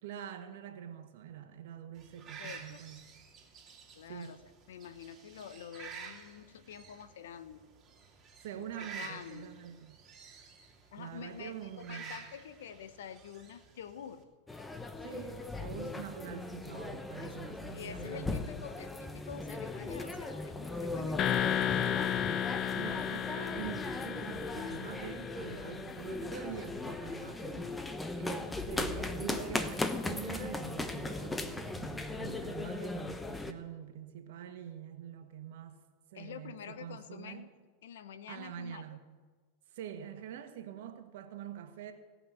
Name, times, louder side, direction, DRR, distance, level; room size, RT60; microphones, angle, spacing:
voice 1, 0.0-3.0 4.1-4.4 8.4-10.0 11.0-12.3 15.0-18.4 22.7-27.7 28.1-35.8 36.1-37.5 38.3-39.0 39.7-41.9, right 9 dB, 70° right, 7 dB, 1.5 m, -45 dB
sound 1, 2.0-14.2, right 6 dB, 30° right, 2.3 m, -51 dB
voice 2, 2.4-2.8 3.9-4.4 4.7-7.6 8.5-9.5 10.9-14.2 17.2-21.8 36.1-37.5 37.8-38.8, left 8 dB, 75° left, 12 dB, 0.9 m, -47 dB
sound 2, 14.5-33.5, left 2 dB, 10° left, 1.0 m, -38 dB
sound 3, 21.2-26.1, left 9 dB, 35° left, 0.7 m, -34 dB
17.5 x 5.9 x 8.1 m, 1.4 s
hypercardioid pair, 105°, 0 cm